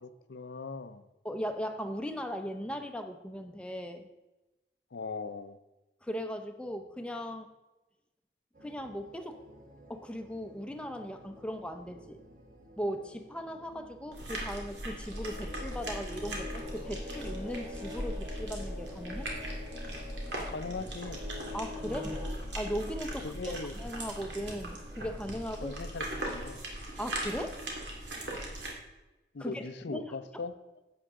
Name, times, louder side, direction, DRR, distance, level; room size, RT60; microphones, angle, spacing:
voice 1, 0.0-1.1 4.9-5.6 20.5-21.2 23.2-23.7 25.6-26.6 29.3-30.6, left 4 dB, 70° left, 12 dB, 0.5 m, -39 dB
voice 2, 1.2-4.1 6.0-7.5 8.6-9.4 9.9-12.2 12.8-19.3 21.5-22.2 22.5-25.7 27.0-27.6 29.4-29.6 29.9-30.0, equal, 5° left, 5 dB, 0.6 m, -38 dB
sound 1, 8.5-26.5, equal, 45° right, 1.1 m, -56 dB
sound 2, 14.1-28.7, right 1 dB, 75° right, 2.2 m, -39 dB
sound 3, 15.3-22.3, left 2 dB, 20° right, 3.8 m, -44 dB
11.0 x 8.0 x 3.7 m, 1.0 s
head